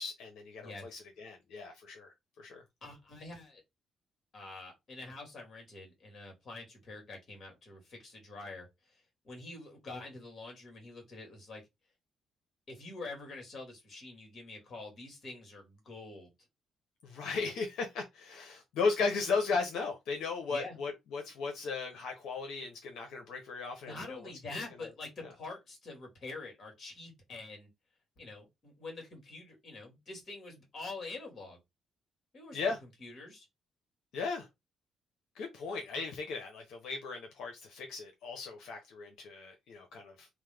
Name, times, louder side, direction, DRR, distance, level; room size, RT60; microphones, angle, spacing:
voice 1, 0.0-2.6 17.0-24.2 24.8-24.9 32.5-32.8 34.1-34.5 35.4-40.3, left 4 dB, 85° left, 0.7 m, -36 dB
voice 2, 0.6-1.0 2.8-3.6 4.3-9.0 9.2-11.6 12.7-16.3 20.5-20.8 23.8-27.7 28.2-31.6 32.3-33.5, left 3 dB, 45° left, 1.8 m, -46 dB
3.0 x 2.1 x 3.3 m
cardioid pair, 90°, 0 cm